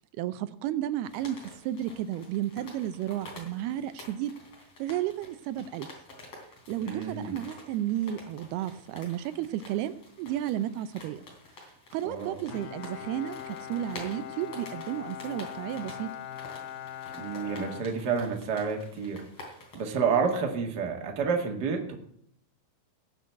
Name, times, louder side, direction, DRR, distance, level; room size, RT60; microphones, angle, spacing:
voice 1, 0.2-4.3 4.8-5.9 6.7-11.2 11.9-16.1, right 12 dB, 85° right, 12 dB, 2.6 m, -33 dB
sound 1, 1.0-19.8, left 2 dB, 40° left, 4.2 m, -49 dB
voice 2, 6.8-7.4 12.0-12.4 17.2-19.2 19.7-22.0, right 5 dB, 35° right, 2 dB, 1.7 m, -29 dB
Bowed string instrument, 12.5-18.7, left 10 dB, 80° left, 2.4 m, -41 dB
17.5 x 6.1 x 8.1 m, 0.67 s
omnidirectional pair, 4.6 m